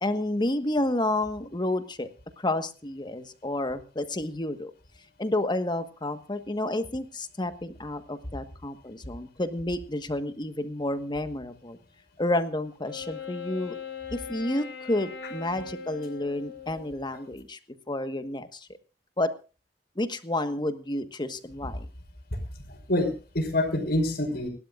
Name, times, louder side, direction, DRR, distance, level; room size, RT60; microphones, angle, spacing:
voice 1, 0.0-2.1 2.4-4.7 5.2-11.8 12.2-13.8 14.1-17.6 17.9-18.7 19.2-19.3 20.0-21.8, left 1 dB, 25° left, 9 dB, 1.4 m, -30 dB
Wind instrument woodwind instrument, 12.8-17.3, left 5 dB, 75° left, 3.2 m, -40 dB
voice 2, 22.7-24.5, left 1 dB, 60° left, -6 dB, 3.9 m, -26 dB
28.5 x 12.5 x 2.5 m, 0.35 s
head